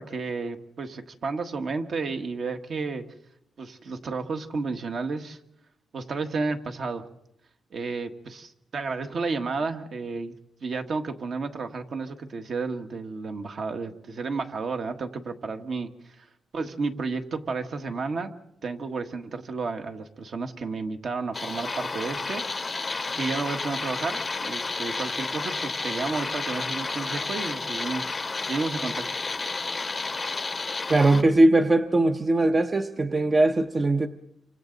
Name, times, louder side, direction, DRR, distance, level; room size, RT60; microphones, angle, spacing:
voice 1, 0.0-3.0 3.6-5.4 5.9-7.0 7.7-16.3 16.5-18.3 18.6-22.7 23.0-28.2 28.5-29.1, right 4 dB, 50° right, 5 dB, 1.5 m, -32 dB
sound 1, 21.3-31.2, left 3 dB, 25° left, 0.7 m, -31 dB
voice 2, 30.9-34.1, right 2 dB, 25° right, 7 dB, 0.7 m, -20 dB
28.5 x 25.0 x 4.0 m, 0.80 s
wide cardioid pair, 150°, 0 cm